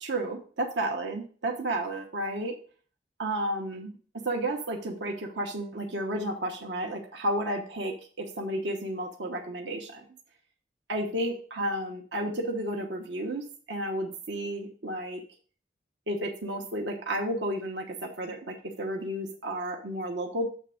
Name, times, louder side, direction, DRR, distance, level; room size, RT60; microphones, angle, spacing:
voice 1, 0.0-2.6 3.2-4.0 4.2-10.0 10.9-15.2 16.1-20.5, right 1 dB, 80° right, 1 dB, 1.1 m, -32 dB
7.4 x 3.4 x 6.4 m, 0.42 s
head